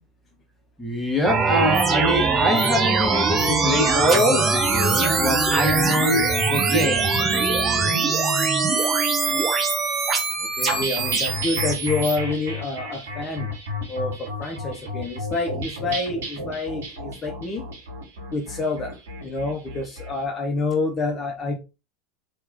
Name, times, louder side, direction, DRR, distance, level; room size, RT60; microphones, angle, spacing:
voice 1, 0.8-8.0 10.6-10.8, left 1 dB, ahead, 1.5 m, -24 dB
sound 1, 1.2-12.2, right 4 dB, 30° right, 1.0 m, -22 dB
voice 2, 10.6-13.5 13.9-14.1 14.4-17.6 18.3-18.9 19.2-21.6, left 3 dB, 30° left, 0.8 m, -27 dB
sound 2, 10.7-20.1, left 1 dB, 75° right, 1.6 m, -32 dB
3.1 x 3.0 x 3.6 m
hypercardioid pair, 80°, 0 cm